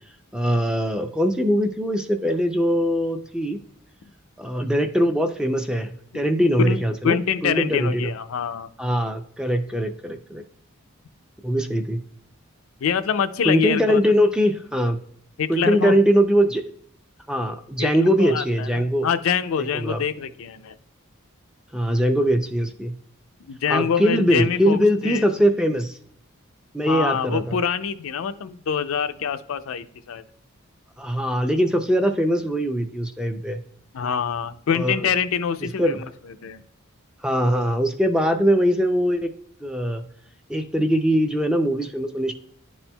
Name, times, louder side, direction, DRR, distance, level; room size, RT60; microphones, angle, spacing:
voice 1, 0.3-3.6 4.4-8.1 8.8-10.4 11.4-12.0 13.4-15.0 15.5-16.6 17.3-19.1 19.6-20.0 21.7-22.9 23.7-26.0 26.7-27.6 31.0-33.6 34.7-35.1 35.6-36.1 37.2-39.3 39.6-40.0 40.5-42.3, equal, 5° right, 7 dB, 0.3 m, -22 dB
voice 2, 7.0-8.7 12.8-14.0 15.4-15.9 17.8-17.9 18.2-20.7 23.4-25.3 26.9-30.2 33.9-36.0 36.4-36.6, left 7 dB, 80° left, 10 dB, 0.4 m, -25 dB
10.5 x 4.3 x 2.2 m, 0.68 s
head